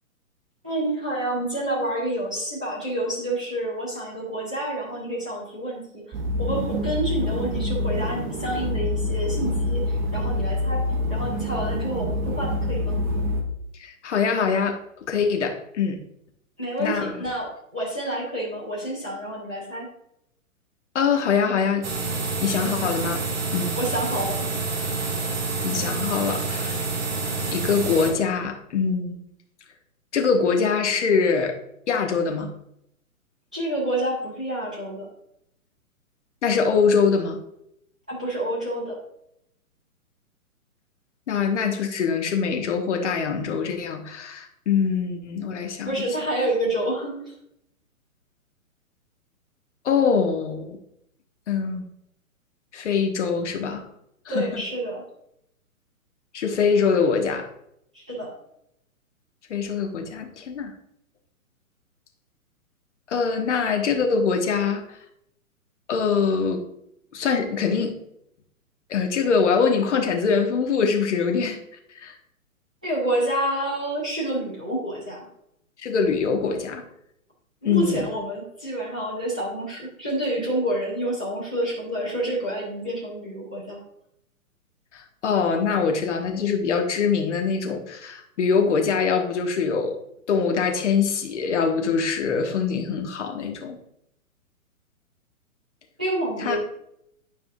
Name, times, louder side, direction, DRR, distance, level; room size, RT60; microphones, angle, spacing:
voice 1, 0.6-6.0 6.4-10.8 11.1-13.0 16.6-19.9 23.7-24.5 33.5-35.0 38.1-39.0 45.8-47.2 54.3-55.0 57.9-58.3 72.8-75.3 77.6-83.8 96.0-96.6, right 1 dB, 5° right, -8 dB, 0.3 m, -28 dB
sound 1, 6.1-13.4, left 1 dB, 25° right, 0.8 m, -26 dB
voice 2, 13.8-14.8 15.1-16.0 16.8-17.1 20.9-21.9 22.4-23.3 23.5-23.8 25.6-26.9 27.5-29.2 30.1-31.6 31.9-32.5 36.4-37.4 41.3-46.0 49.8-50.8 51.5-51.8 52.7-53.9 54.2-54.6 56.3-57.5 59.5-60.7 63.1-65.0 65.9-66.7 67.1-68.0 68.9-71.6 71.9-72.1 75.8-76.8 77.6-78.0 84.9-90.0 90.3-93.8 96.4-96.6, left 5 dB, 55° left, 4 dB, 1.3 m, -23 dB
sound 2, 21.8-28.1, right 3 dB, 45° right, 2.0 m, -28 dB
9.5 x 5.0 x 2.7 m, 0.76 s
figure-of-eight pair, 120°, 43 cm